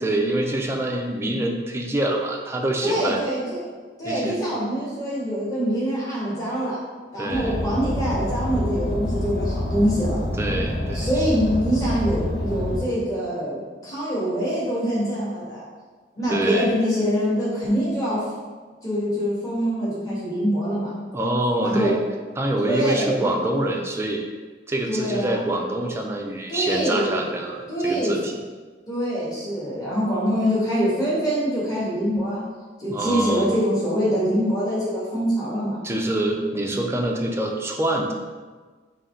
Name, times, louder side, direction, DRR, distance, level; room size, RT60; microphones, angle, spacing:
voice 1, 0.0-3.2 4.0-4.4 7.2-7.6 10.4-11.3 16.3-16.7 21.1-22.0 22.4-24.2 24.7-28.3 32.9-33.5 35.8-38.1, right 1 dB, 15° right, 2 dB, 0.4 m, -25 dB
voice 2, 2.8-3.6 4.0-6.8 7.1-10.2 10.9-15.6 16.1-18.2 18.8-20.9 21.6-21.9 22.6-23.3 24.9-25.6 26.5-27.2 27.7-28.2 28.9-32.4 32.8-35.8, equal, 20° left, -8 dB, 1.4 m, -24 dB
Car, 7.3-12.8, left 1 dB, 75° left, 1.3 m, -27 dB
3.8 x 3.2 x 4.3 m, 1.4 s
head